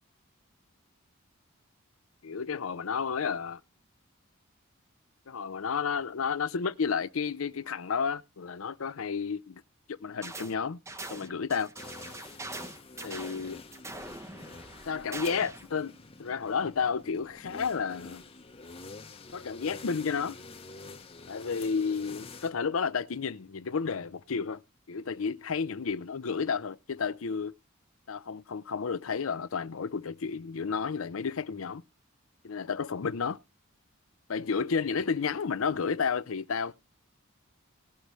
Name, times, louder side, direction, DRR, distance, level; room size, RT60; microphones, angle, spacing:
voice 1, 2.2-3.6 5.3-9.6 9.9-10.8 11.1-11.7 13.0-13.6 14.9-15.9 16.2-18.2 19.3-20.4 21.3-24.6 24.9-27.5 28.1-31.8 32.4-33.4 34.3-36.7, left 5 dB, 70° left, 0.6 m, -31 dB
sound 1, 10.2-10.6 10.9-15.7, right 2 dB, 15° right, 0.7 m, -42 dB
sound 2, 11.7-22.5, left 3 dB, 30° left, 0.9 m, -48 dB
19.0 x 6.6 x 3.1 m
head